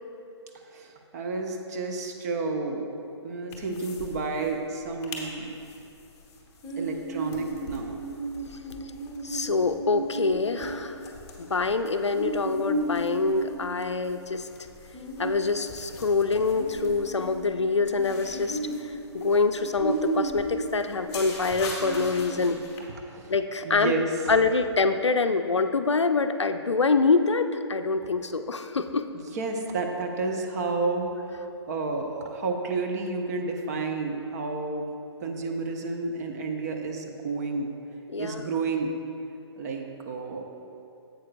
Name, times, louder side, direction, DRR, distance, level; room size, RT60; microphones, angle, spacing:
voice 1, 0.7-2.9 3.2-5.6 6.8-8.0 22.9-23.3 23.6-24.1 29.1-34.9 35.2-37.7 38.2-38.9 39.6-40.4, right 3 dB, 35° right, 3 dB, 0.7 m, -31 dB
sound 1, 3.5-4.1 4.4-4.5 4.8-5.2 5.7-22.8, right 1 dB, 20° left, 0.9 m, -34 dB
voice 2, 9.2-11.0 11.4-14.5 15.2-18.6 19.1-22.6 23.3-23.9 24.3-29.0 38.1-38.5, left 4 dB, 75° left, 9 dB, 0.4 m, -25 dB
11.0 x 7.9 x 2.4 m, 2.7 s
figure-of-eight pair, 130°, 15 cm